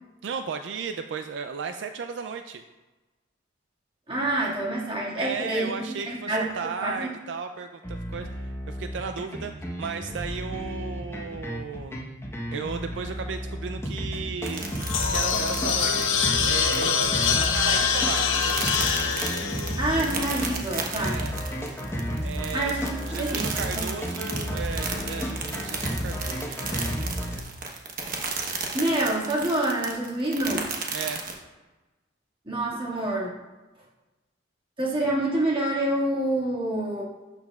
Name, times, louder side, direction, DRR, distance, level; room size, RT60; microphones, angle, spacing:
voice 1, 0.2-2.6 5.2-9.5 9.8-12.0 12.5-14.7 15.1-18.3 21.0-21.4 22.2-27.5 30.9-31.2, right 5 dB, 65° right, 7 dB, 0.4 m, -35 dB
voice 2, 4.1-6.5 6.8-7.1 19.8-21.2 22.5-23.4 23.7-23.9 28.7-30.6 32.5-33.3 34.8-37.0, right 1 dB, 30° right, -5 dB, 1.9 m, -27 dB
sound 1, 7.8-27.4, equal, 15° left, 1.0 m, -32 dB
sound 2, 14.4-31.4, right 5 dB, 45° right, 1.1 m, -34 dB
sound 3, 14.5-20.8, left 6 dB, 85° left, 0.9 m, -25 dB
12.0 x 6.9 x 2.4 m, 1.2 s
head